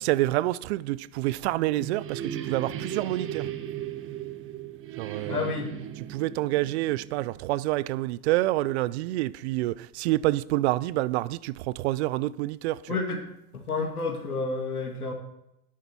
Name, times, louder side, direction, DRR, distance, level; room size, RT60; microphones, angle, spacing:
voice 1, 0.0-3.4 5.0-5.5 6.1-13.0, right 17 dB, 50° right, 0.6 m, -27 dB
sound 1, 1.4-7.9, right 10 dB, 30° right, 1.4 m, -37 dB
voice 2, 5.3-5.7 12.9-13.2 13.5-15.1, left 4 dB, 90° left, 2.1 m, -30 dB
12.0 x 10.5 x 4.4 m
hypercardioid pair, 100°, 44 cm